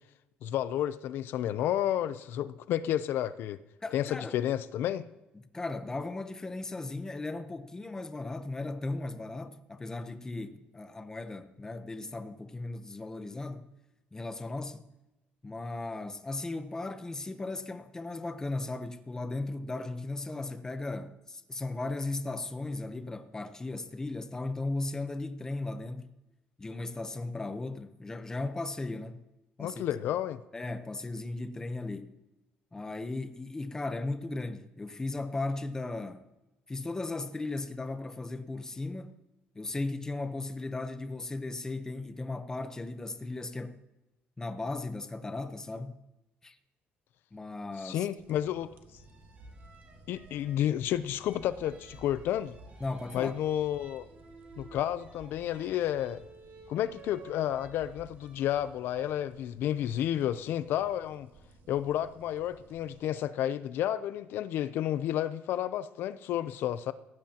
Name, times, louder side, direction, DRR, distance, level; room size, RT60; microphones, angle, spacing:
voice 1, 0.4-3.6 3.9-5.0 29.6-30.4 47.8-48.7 50.1-52.5 53.1-54.1 54.6-56.2 56.7-61.3 61.7-66.9, left 11 dB, 75° left, 0.6 m, -31 dB
voice 2, 3.8-4.4 5.5-13.7 14.1-14.9 15.4-26.1 26.6-29.2 29.6-29.8 30.5-32.2 32.7-36.2 36.7-39.1 39.5-43.8 44.4-46.0 46.4-46.6 47.3-48.1 52.8-53.4, left 2 dB, 15° left, 0.9 m, -36 dB
sound 1, 48.2-63.1, right 2 dB, 65° right, 1.8 m, -58 dB
sound 2, 49.0-58.7, right 3 dB, 35° right, 4.8 m, -54 dB
18.0 x 16.0 x 2.9 m
cardioid pair, 125°, 4 cm